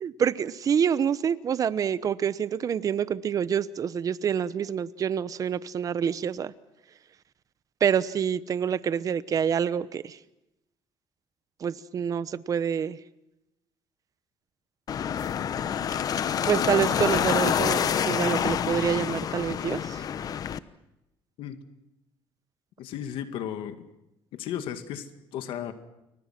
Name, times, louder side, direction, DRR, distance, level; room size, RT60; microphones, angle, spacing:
voice 1, 0.0-6.5 7.8-10.2 11.6-13.0 16.5-20.0, right 8 dB, 40° right, 1.0 m, -27 dB
sound 1, 14.9-20.6, left 8 dB, 45° left, 1.0 m, -27 dB
voice 2, 22.8-23.9 24.3-25.7, left 10 dB, 75° left, 2.2 m, -35 dB
29.5 x 23.0 x 6.0 m
cardioid pair, 125°, 9 cm